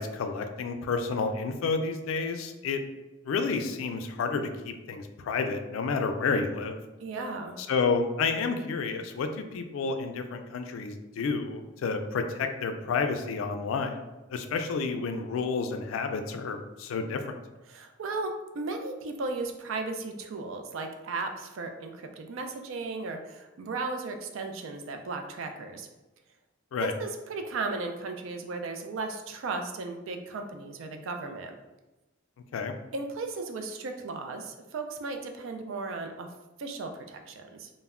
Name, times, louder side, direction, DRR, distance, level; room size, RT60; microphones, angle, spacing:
voice 1, 0.0-2.8 3.2-6.8 7.6-14.0 14.3-17.4 26.7-26.9 32.5-32.7, left 4 dB, 75° left, 6 dB, 0.3 m, -30 dB
voice 2, 7.0-7.6 17.7-25.9 26.8-31.5 32.9-36.3 36.6-37.7, right 3 dB, 70° right, 5 dB, 0.3 m, -35 dB
2.1 x 2.0 x 3.5 m, 1.1 s
head